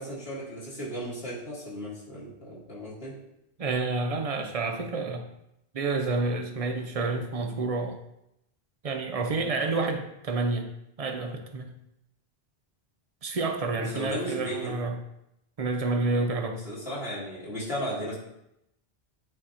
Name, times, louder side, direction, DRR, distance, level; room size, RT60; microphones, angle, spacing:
voice 1, 0.0-3.2 13.7-14.7 15.9-16.3 16.6-18.2, equal, 65° left, -7 dB, 2.0 m, -35 dB
voice 2, 3.6-5.2 5.7-8.0 8.8-10.7 11.0-11.7 13.2-15.0 15.6-16.6, right 3 dB, 40° right, 5 dB, 0.7 m, -29 dB
9.0 x 4.0 x 2.8 m, 0.81 s
omnidirectional pair, 1.1 m